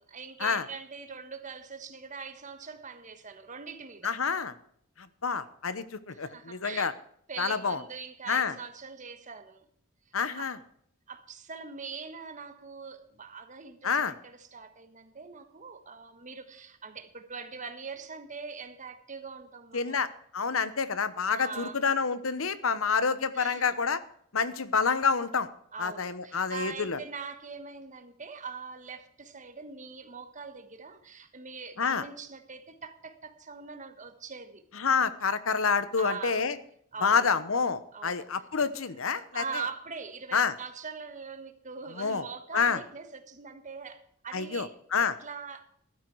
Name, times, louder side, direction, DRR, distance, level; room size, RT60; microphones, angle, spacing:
voice 1, 0.0-4.1 6.1-6.9 7.3-9.7 10.4-10.5 11.1-20.1 21.3-21.8 23.3-23.8 25.7-34.6 36.0-36.4 36.9-37.3 37.9-38.2 39.3-44.7 45.0-45.9, right 5 dB, 35° right, 8 dB, 1.4 m, -42 dB
voice 2, 4.0-4.5 5.0-6.9 7.4-7.8 8.3-8.5 10.1-10.6 13.8-14.1 19.7-24.0 24.3-25.5 25.8-27.0 31.8-32.0 34.7-36.6 37.0-39.4 40.3-40.5 42.0-42.2 42.5-42.8 44.3-45.2, left 5 dB, 70° left, 14 dB, 1.0 m, -28 dB
14.5 x 12.0 x 4.7 m, 0.67 s
head